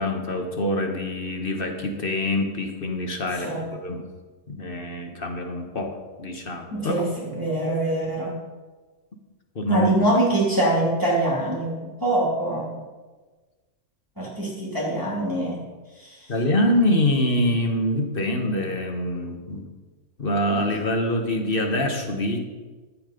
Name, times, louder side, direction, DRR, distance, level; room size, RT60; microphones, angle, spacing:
voice 1, 0.0-3.5 3.8-4.1 4.5-7.0 9.5-9.9 16.3-19.7 20.2-22.4, left 1 dB, 40° left, 4 dB, 1.4 m, -25 dB
voice 2, 6.7-8.4 9.7-12.7 14.2-15.6 16.0-16.3, right 1 dB, 15° right, -6 dB, 2.8 m, -24 dB
13.0 x 7.7 x 5.2 m, 1.3 s
omnidirectional pair, 1.5 m